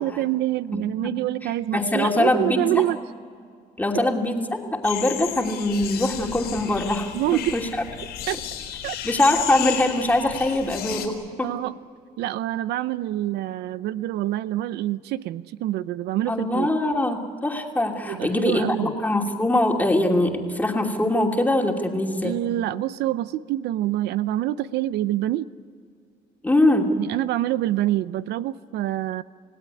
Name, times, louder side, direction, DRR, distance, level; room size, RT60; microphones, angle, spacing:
voice 1, 0.0-3.0 7.1-7.6 8.3-8.4 8.8-9.0 11.4-11.7 12.2-16.7 18.1-18.9 22.2-25.5 27.0-29.2, right 14 dB, 80° right, 16 dB, 0.6 m, -26 dB
voice 2, 0.7-1.1 1.4-2.8 3.8-7.7 9.0-11.5 16.3-22.4 26.4-27.0, left 1 dB, 10° left, 1 dB, 2.8 m, -23 dB
sound 1, 4.8-11.1, left 10 dB, 85° left, 4.3 m, -33 dB
28.5 x 17.0 x 9.8 m, 2.2 s
cardioid pair, 110°, 17 cm